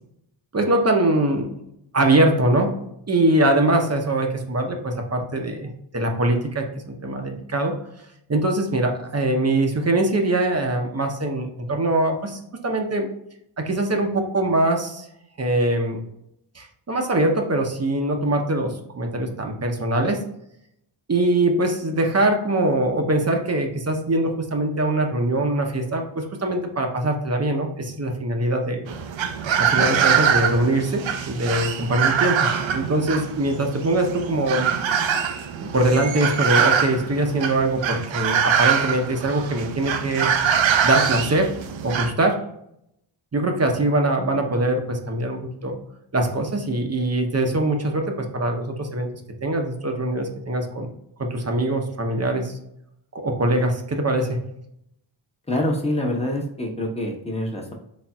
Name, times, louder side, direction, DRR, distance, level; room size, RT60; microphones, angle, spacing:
voice 1, 0.5-1.5 1.9-2.8 3.1-7.7 8.3-13.1 13.6-15.1 15.4-16.0 16.5-20.2 21.1-28.9 29.6-34.7 35.6-40.3 40.8-41.5 41.8-42.4 43.3-45.8 46.1-49.1 49.4-50.9 51.2-52.6 53.1-54.4, right 1 dB, 30° right, 3 dB, 0.7 m, -22 dB
sound 1, 28.9-42.1, right 7 dB, 70° right, 0.6 m, -23 dB
voice 2, 55.5-57.7, left 1 dB, 15° left, 0 dB, 1.0 m, -25 dB
4.1 x 3.4 x 2.3 m, 0.76 s
cardioid pair, 75°, 49 cm